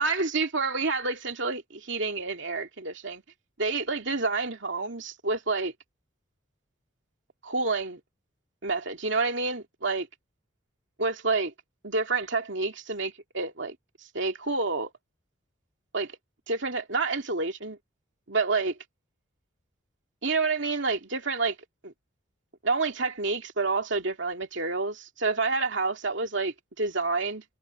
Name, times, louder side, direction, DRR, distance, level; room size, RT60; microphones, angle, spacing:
voice 1, 0.0-3.2 3.6-5.7 7.4-8.0 8.6-10.1 11.0-11.5 11.8-13.8 14.1-14.9 15.9-16.2 16.5-17.8 18.3-18.8 20.2-21.6 21.8-21.9 22.6-27.4, right 3 dB, 65° right, 2.6 m, -28 dB
head